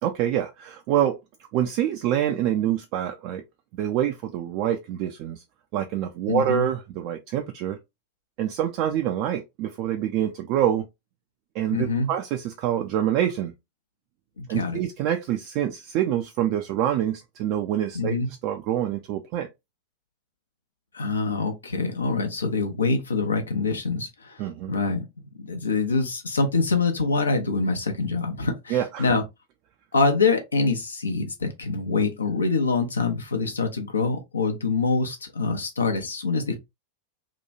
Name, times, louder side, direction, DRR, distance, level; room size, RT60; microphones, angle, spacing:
voice 1, 0.0-1.2 1.5-3.4 3.7-5.4 5.7-7.8 8.4-10.9 11.5-13.5 14.5-18.2 18.4-19.5 24.4-24.7 28.7-29.1, right 11 dB, 45° right, 0.3 m, -26 dB
voice 2, 6.3-6.7 11.7-12.1 14.4-14.8 17.9-18.3 20.9-24.4 24.7-25.0 25.3-29.2 29.9-36.6, left 4 dB, 75° left, 0.6 m, -25 dB
2.9 x 2.3 x 2.6 m
figure-of-eight pair, 90°, 0 cm